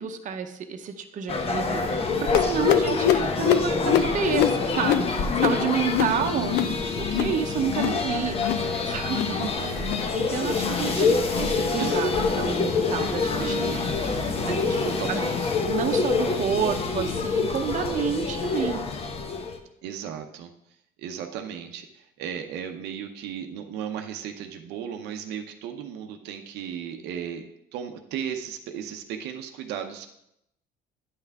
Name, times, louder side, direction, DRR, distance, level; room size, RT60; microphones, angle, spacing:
voice 1, 0.0-9.9 10.1-12.1 12.4-14.8 15.1-15.2 15.7-18.8, right 7 dB, 50° right, 6 dB, 0.8 m, -30 dB
sound 1, 1.3-19.6, left 4 dB, 35° left, 0.8 m, -26 dB
sound 2, 2.3-7.4 7.6-8.0 8.3-8.7 9.0-9.4 9.8-10.1 10.5-10.8 11.3-11.6 12.1-12.4 12.9-13.1 13.8-13.9 14.6-14.7 15.5-15.6, left 10 dB, 85° left, 0.5 m, -26 dB
sound 3, 5.5-15.1, right 2 dB, 5° right, 1.2 m, -43 dB
voice 2, 9.3-9.9 10.7-11.4 11.8-12.0 13.4-13.8 14.5-14.6 14.8-15.5 19.8-20.5 21.0-27.4 27.7-30.1, right 8 dB, 90° right, 4 dB, 0.7 m, -35 dB
9.6 x 5.7 x 3.5 m, 0.80 s
cardioid pair, 110°, 17 cm